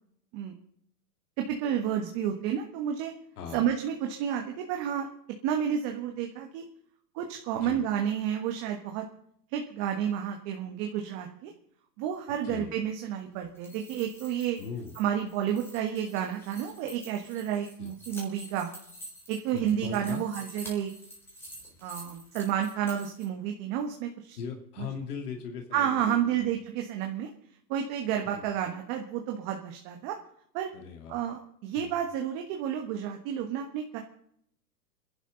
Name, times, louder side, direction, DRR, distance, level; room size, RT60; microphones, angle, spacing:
voice 1, 1.5-3.1 3.5-5.1 5.4-6.6 7.1-9.1 9.5-11.5 12.0-14.6 14.9-18.7 19.3-20.9 21.8-24.4 24.8-24.9 25.7-27.3 27.7-30.1 30.5-30.7 31.1-34.0, right 9 dB, 25° right, 3 dB, 1.4 m, -31 dB
voice 2, 3.4-3.7 7.6-7.8 12.4-12.7 14.6-14.9 17.8-17.9 19.5-20.2 24.4-26.4 28.4-28.5 30.7-31.2 31.8-31.9, left 6 dB, 65° left, 3 dB, 2.9 m, -39 dB
sound 1, 13.4-23.2, equal, 5° left, 4.1 m, -48 dB
29.0 x 11.5 x 3.9 m, 0.69 s
hypercardioid pair, 155°, 50 cm